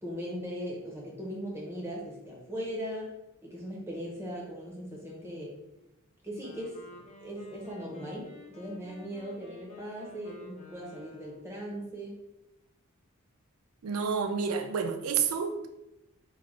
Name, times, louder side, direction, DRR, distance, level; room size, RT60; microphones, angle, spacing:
voice 1, 0.0-3.1 3.4-5.6 6.2-6.8 7.2-12.2, equal, 10° right, -3 dB, 0.8 m, -39 dB
Wind instrument woodwind instrument, 6.3-11.6, left 3 dB, 30° left, 0.6 m, -52 dB
voice 2, 13.8-15.7, right 6 dB, 85° right, 7 dB, 0.4 m, -29 dB
3.2 x 2.3 x 3.6 m, 0.93 s
head